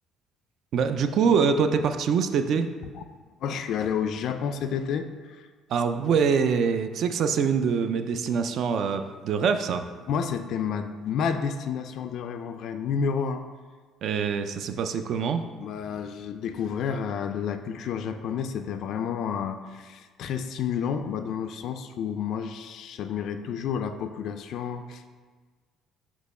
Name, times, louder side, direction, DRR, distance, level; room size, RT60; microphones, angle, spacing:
voice 1, 0.7-2.7 5.7-9.8 14.0-15.4, right 6 dB, 50° right, 8 dB, 0.4 m, -24 dB
voice 2, 3.4-5.5 6.1-6.2 10.0-13.4 15.6-25.1, left 7 dB, 50° left, 8 dB, 0.3 m, -30 dB
6.2 x 3.0 x 5.3 m, 1.4 s
cardioid pair, 170°, 0 cm